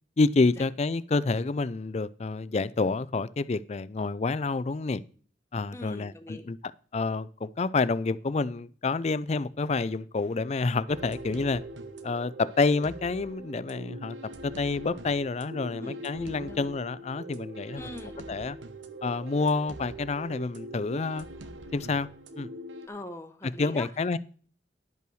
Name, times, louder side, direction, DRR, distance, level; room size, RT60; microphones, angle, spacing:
voice 1, 0.2-5.0 5.5-6.6 6.9-11.6 12.0-14.2 14.4-17.9 18.3-18.6 19.0-21.3 21.7-22.1 22.4-22.5 23.6-24.2, left 3 dB, 35° left, 0.4 m, -28 dB
voice 2, 5.7-6.5 15.6-16.0 16.3-16.7 17.8-18.2 22.9-23.9, left 1 dB, 15° left, 1.0 m, -42 dB
sound 1, 10.9-22.9, right 1 dB, 80° right, 0.9 m, -42 dB
10.5 x 5.6 x 6.3 m
head